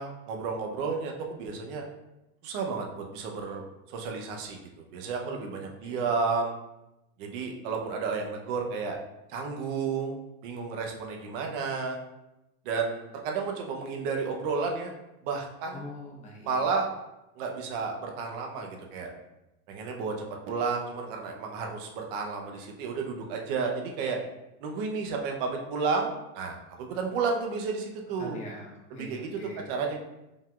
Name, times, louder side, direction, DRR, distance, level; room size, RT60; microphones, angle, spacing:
voice 1, 0.0-1.8 2.4-6.5 7.2-9.0 9.3-12.0 12.6-14.9 15.2-15.9 16.4-16.9 17.4-19.1 19.7-24.2 24.6-28.4 28.9-29.4 29.7-30.0, right 4 dB, 55° right, 1 dB, 0.8 m, -32 dB
voice 2, 15.7-16.6 28.2-29.6, left 1 dB, 20° left, -2 dB, 0.8 m, -43 dB
5.2 x 3.7 x 2.4 m, 0.95 s
cardioid pair, 175°, 31 cm